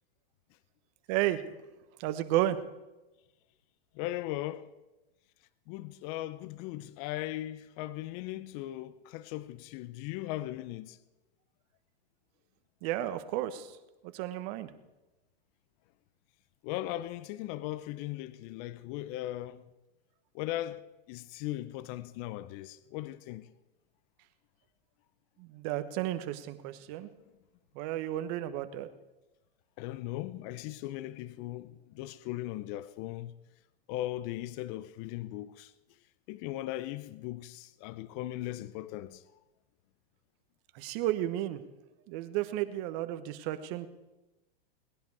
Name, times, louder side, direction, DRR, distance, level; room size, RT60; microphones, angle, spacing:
voice 1, 1.1-1.4 2.0-2.6 12.8-13.7 14.1-14.7 25.4-27.1 27.7-28.9 40.7-41.6 42.1-43.9, right 14 dB, 45° right, 1.2 m, -32 dB
voice 2, 4.0-4.7 5.7-11.0 16.6-19.6 20.3-23.5 29.8-33.3 33.9-35.7 36.3-39.2, left 15 dB, 40° left, 0.6 m, -38 dB
19.0 x 10.5 x 4.8 m
hypercardioid pair, 130°, 30 cm